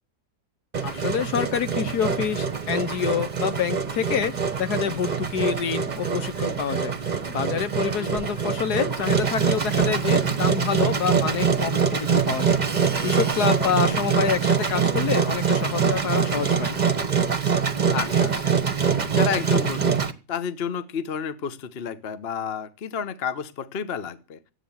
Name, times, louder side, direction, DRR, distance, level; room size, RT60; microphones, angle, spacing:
Engine, 0.7-20.1, right 6 dB, 30° right, 1.1 m, -24 dB
voice 1, 0.8-16.8, left 7 dB, 65° left, 12 dB, 1.5 m, -27 dB
voice 2, 13.6-14.0 17.9-18.6 18.8-24.4, left 7 dB, 40° left, 13 dB, 1.0 m, -31 dB
14.0 x 10.0 x 7.1 m, 0.34 s
omnidirectional pair, 2.0 m